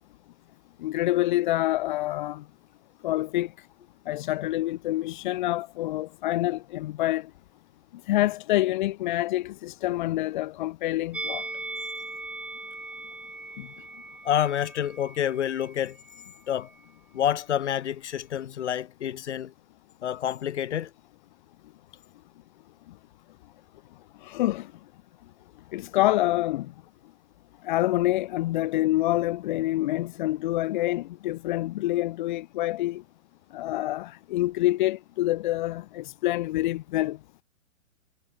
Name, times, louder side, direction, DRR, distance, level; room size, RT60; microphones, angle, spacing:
voice 1, 0.8-2.4 3.0-3.7 4.1-7.3 8.1-11.5 13.6-13.7 24.2-24.7 25.7-26.7 27.6-33.0 33.5-37.2, left 16 dB, 35° left, 2.3 m, -27 dB
Musical instrument, 11.1-16.4 16.6-16.8, right 2 dB, 5° right, 2.6 m, -39 dB
voice 2, 14.2-16.0 16.5-16.7 17.1-19.5 20.0-20.9, left 10 dB, 55° left, 4.9 m, -28 dB
hypercardioid pair, 160°, 40 cm